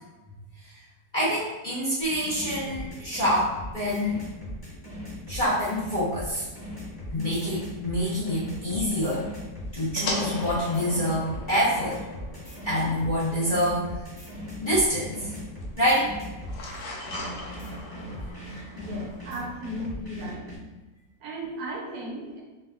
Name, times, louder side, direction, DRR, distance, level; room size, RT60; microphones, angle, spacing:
voice 1, 1.1-4.3 5.3-6.5 7.1-9.3 9.7-12.0 12.6-13.9 14.6-15.3 15.8-16.1 18.6-18.7, equal, 40° left, -10 dB, 0.8 m, -26 dB
sound 1, 2.0-16.6 17.0-20.6, equal, 15° left, 1.1 m, -39 dB
sound 2, 6.6-19.4, left 2 dB, 70° left, 1.1 m, -40 dB
voice 2, 18.7-20.5 21.2-22.4, equal, 65° right, -3 dB, 1.1 m, -36 dB
4.4 x 2.3 x 2.3 m, 1.1 s
omnidirectional pair, 1.8 m